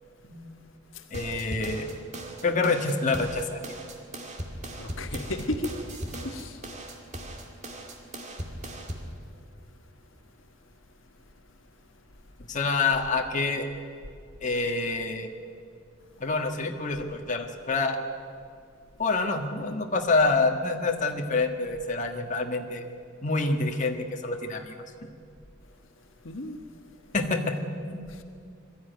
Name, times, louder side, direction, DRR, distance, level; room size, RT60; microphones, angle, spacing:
voice 1, 1.1-1.9 2.4-3.6 12.5-13.7 14.4-15.3 16.2-18.0 19.0-22.8 23.2-24.7 27.1-27.6 27.9-28.0, left 3 dB, 40° left, 3 dB, 1.6 m, -27 dB
sound 1, 1.1-9.1, right 1 dB, 35° right, 2.3 m, -38 dB
voice 2, 4.8-5.8 6.2-6.6 26.2-26.6 28.1-28.2, left 1 dB, 80° left, 6 dB, 1.4 m, -34 dB
21.5 x 13.5 x 9.4 m, 2.3 s
head